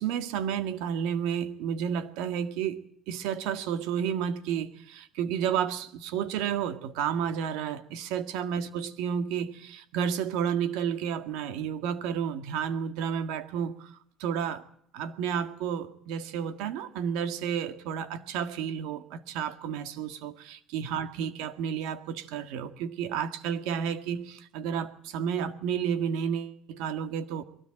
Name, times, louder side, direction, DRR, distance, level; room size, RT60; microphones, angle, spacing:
voice 1, 0.0-14.6 14.9-27.4, right 8 dB, 80° right, 1.8 m, -31 dB
22.5 x 17.5 x 8.9 m
cardioid pair, 175°, 0 cm